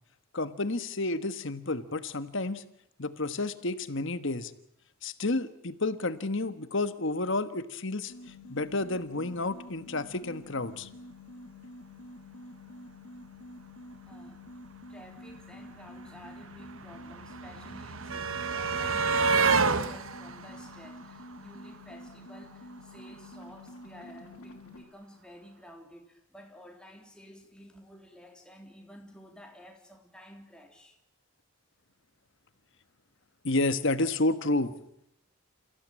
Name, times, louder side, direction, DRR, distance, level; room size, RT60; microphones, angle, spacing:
voice 1, 0.3-2.6 3.0-4.5 5.0-8.1 8.5-10.9 33.4-34.7, left 2 dB, 55° left, 1.4 m, -30 dB
sound 1, 8.1-24.8, left 2 dB, 85° left, 3.0 m, -48 dB
voice 2, 14.0-14.4 14.9-31.0, equal, 5° left, 3.2 m, -52 dB
sound 2, 15.3-15.4 15.6-21.8 23.0-23.1 23.4-23.5, right 4 dB, 65° right, 1.2 m, -30 dB
29.0 x 16.0 x 8.9 m
head